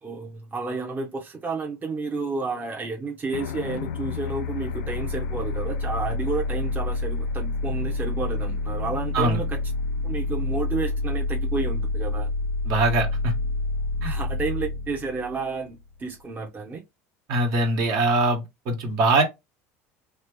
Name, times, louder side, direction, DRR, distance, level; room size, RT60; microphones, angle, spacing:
voice 1, 0.0-9.6 10.0-12.3 14.0-16.8, right 4 dB, 25° right, 0.8 m, -31 dB
sound 1, 3.3-16.0, left 3 dB, 90° left, 0.4 m, -28 dB
voice 2, 12.6-13.3 14.0-14.1 17.3-19.2, right 2 dB, 60° right, 1.4 m, -22 dB
3.1 x 2.5 x 3.3 m
supercardioid pair, 100°, 7 cm